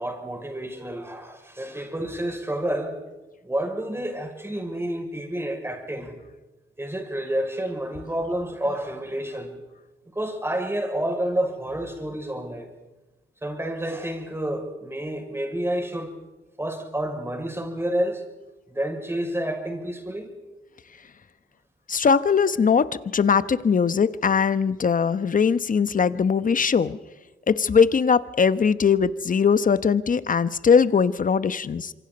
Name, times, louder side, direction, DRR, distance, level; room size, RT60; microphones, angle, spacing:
voice 1, 0.0-3.0 3.4-6.1 6.8-9.5 10.1-12.7 13.4-16.1 16.6-18.2 18.7-20.3, right 1 dB, 10° right, 3 dB, 6.3 m, -29 dB
voice 2, 21.9-22.9 23.1-27.0 27.5-31.9, left 6 dB, 45° left, 14 dB, 1.1 m, -20 dB
26.5 x 24.0 x 5.4 m, 1.1 s
cardioid pair, 65°, 20 cm